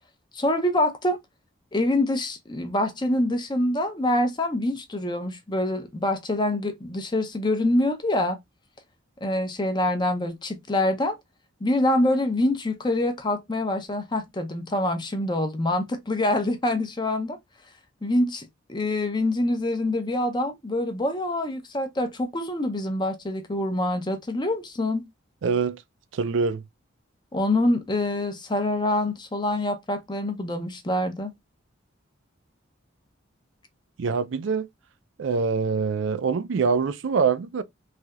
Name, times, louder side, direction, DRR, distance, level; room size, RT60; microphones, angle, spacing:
voice 1, 0.3-1.2 1.7-8.4 9.2-11.2 11.6-17.4 18.0-25.0 27.3-31.3, left 1 dB, 20° left, 0.5 m, -25 dB
voice 2, 25.4-25.8 26.1-26.6 34.0-34.7 35.2-37.6, right 5 dB, 65° right, 0.4 m, -24 dB
3.3 x 2.7 x 2.3 m
head